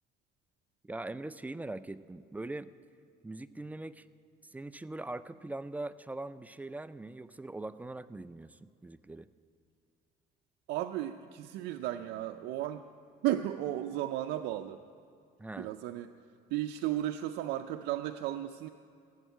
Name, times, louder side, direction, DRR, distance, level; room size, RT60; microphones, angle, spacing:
voice 1, 0.8-2.7 3.2-4.1 4.4-9.3 15.4-15.7, right 2 dB, 10° right, 14 dB, 0.3 m, -41 dB
voice 2, 10.7-12.8 13.2-14.8 15.6-16.1 16.5-18.7, right 13 dB, 90° right, 5 dB, 0.5 m, -34 dB
15.5 x 7.3 x 9.2 m, 2.4 s
cardioid pair, 110°, 17 cm